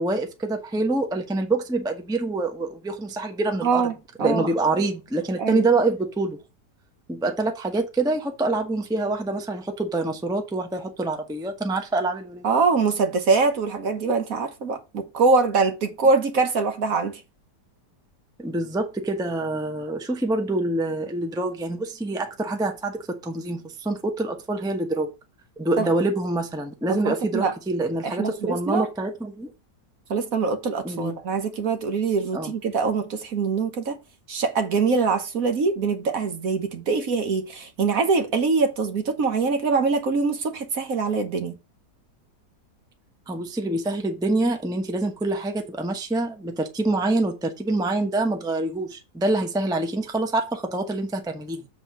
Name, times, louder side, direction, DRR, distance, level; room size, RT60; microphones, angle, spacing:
voice 1, 0.0-3.8 4.2-6.4 7.1-12.5 18.4-25.1 25.6-29.5 30.8-31.1 32.3-32.5 43.3-51.6, right 2 dB, 5° right, 0.8 m, -26 dB
voice 2, 3.6-4.5 5.4-5.6 12.4-17.2 25.8-25.9 26.9-27.5 28.0-28.9 30.1-34.0 34.3-41.5, right 4 dB, 55° right, 1.4 m, -23 dB
7.5 x 3.6 x 6.1 m
omnidirectional pair, 1.8 m